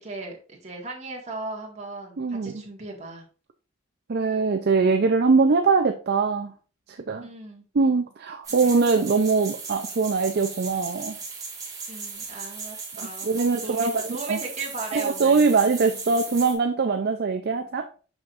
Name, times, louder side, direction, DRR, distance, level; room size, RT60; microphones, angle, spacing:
voice 1, 0.0-3.2 7.2-7.6 8.6-8.8 11.9-15.5, right 3 dB, 35° right, 0 dB, 1.8 m, -37 dB
voice 2, 2.2-2.6 4.1-6.5 6.9-7.3 7.7-11.2 13.2-14.4 14.9-17.9, right 4 dB, 55° right, 5 dB, 0.5 m, -22 dB
sound 1, 8.4-16.5, right 4 dB, 20° right, 1.7 m, -37 dB
6.3 x 6.0 x 2.5 m, 0.38 s
head